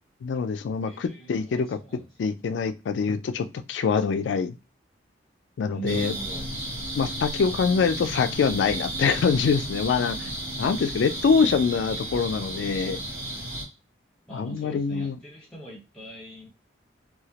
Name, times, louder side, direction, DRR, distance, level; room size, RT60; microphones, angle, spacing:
voice 1, 0.2-1.8 2.2-4.6 5.6-6.1 7.0-10.3 10.6-13.0 14.3-15.2, left 5 dB, 75° left, 9 dB, 0.3 m, -24 dB
voice 2, 0.9-2.1 5.7-6.5 14.3-16.5, right 3 dB, 5° left, -4 dB, 1.0 m, -40 dB
sound 1, 5.9-13.6, right 1 dB, 50° right, 0.8 m, -33 dB
2.2 x 2.0 x 2.8 m, 0.26 s
head